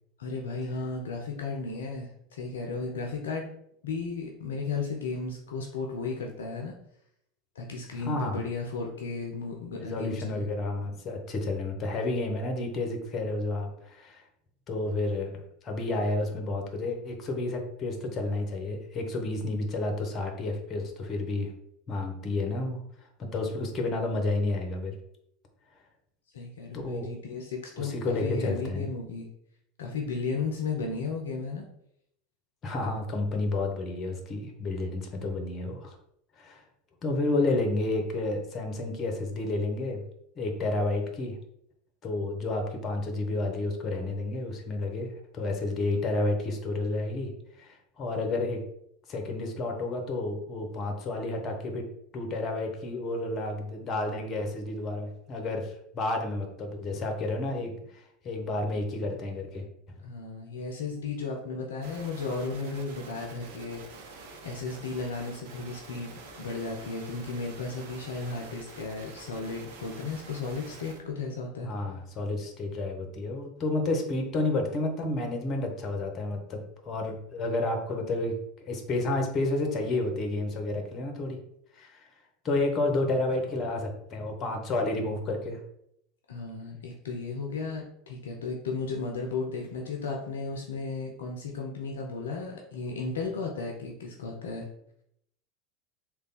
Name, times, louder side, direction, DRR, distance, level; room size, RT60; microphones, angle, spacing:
voice 1, 0.2-3.5 3.8-6.7 7.6-10.5 26.3-29.3 29.8-31.7 60.0-63.8 64.4-71.7 86.3-94.7, left 4 dB, 70° left, 0 dB, 0.5 m, -34 dB
voice 2, 7.9-8.4 9.8-14.2 14.7-21.5 21.9-22.8 23.2-25.0 26.7-27.1 27.8-28.9 32.6-35.9 36.4-36.6 37.0-40.0 40.4-41.4 42.0-47.3 47.6-48.6 49.1-51.8 52.1-59.6 71.6-81.4 81.7-82.1 82.4-85.6, left 2 dB, 35° left, 3 dB, 0.9 m, -31 dB
sound 1, 61.8-71.0, right 3 dB, 60° right, 0.8 m, -47 dB
3.3 x 2.3 x 4.0 m, 0.74 s
figure-of-eight pair, 80°, 0 cm